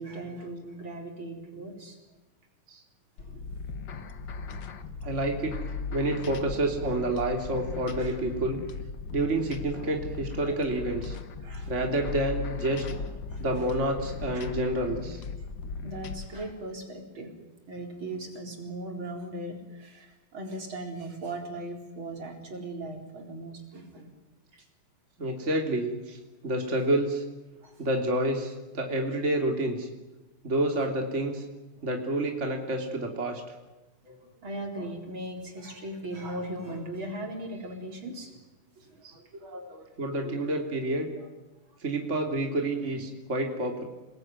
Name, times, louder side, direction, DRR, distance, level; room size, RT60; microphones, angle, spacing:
voice 1, 0.0-2.0 3.2-3.6 3.8-4.1 8.0-8.2 10.4-10.6 11.4-11.7 13.3-13.4 14.3-14.6 15.8-17.3 17.7-24.1 24.5-24.7 27.6-27.8 31.8-31.9 34.0-38.4 38.8-40.0 40.2-40.4 41.2-41.3, right 1 dB, 70° right, 2 dB, 4.9 m, -39 dB
sound 1, 3.2-16.2, left 4 dB, 60° left, 2.1 m, -37 dB
voice 2, 5.0-5.6 5.9-8.6 9.1-11.2 11.7-12.8 13.4-15.2 25.2-26.2 26.4-27.2 27.8-29.9 30.4-31.4 31.8-33.4 39.0-39.1 40.0-41.1 41.8-43.8, right 1 dB, 35° right, 2 dB, 3.3 m, -28 dB
28.0 x 20.0 x 9.6 m, 1.1 s
omnidirectional pair, 2.3 m